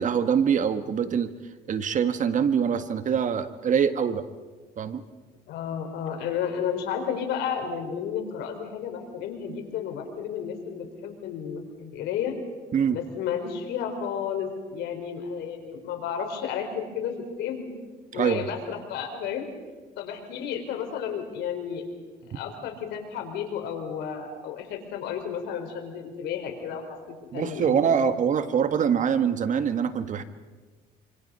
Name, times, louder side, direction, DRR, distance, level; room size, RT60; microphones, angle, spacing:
voice 1, 0.0-1.3 1.7-4.2 4.8-5.0 12.7-13.0 18.1-18.4 27.3-30.2, right 7 dB, 50° right, 10 dB, 1.5 m, -24 dB
voice 2, 5.5-12.3 12.9-17.7 18.1-19.5 20.0-21.8 22.3-27.8, left 8 dB, 85° left, 4 dB, 4.5 m, -32 dB
27.0 x 26.0 x 5.6 m, 1.3 s
cardioid pair, 110°, 17 cm